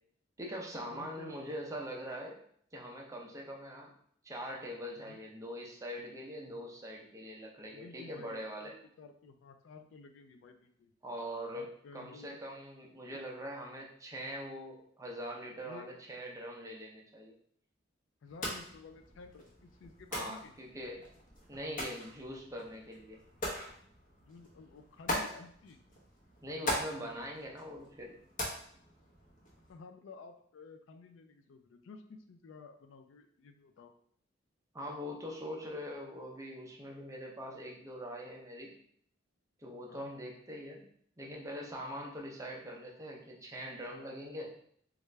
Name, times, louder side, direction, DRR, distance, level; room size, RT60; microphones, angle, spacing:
voice 1, 0.4-2.4 2.7-3.9 4.2-8.7 11.0-11.7 11.9-17.3 20.1-21.0 21.5-23.2 26.4-28.2 34.7-38.7 39.6-40.8 41.2-44.6, equal, 15° right, -1 dB, 0.5 m, -43 dB
voice 2, 0.9-1.4 5.0-5.2 7.7-10.9 11.5-12.4 13.1-13.2 15.6-15.9 18.2-19.5 19.8-20.5 24.2-25.8 29.7-33.9 39.9-40.1 42.0-42.1, left 4 dB, 70° left, 6 dB, 0.4 m, -53 dB
sound 1, 18.3-29.7, left 1 dB, 45° left, 0.9 m, -42 dB
3.2 x 2.4 x 3.2 m, 0.63 s
head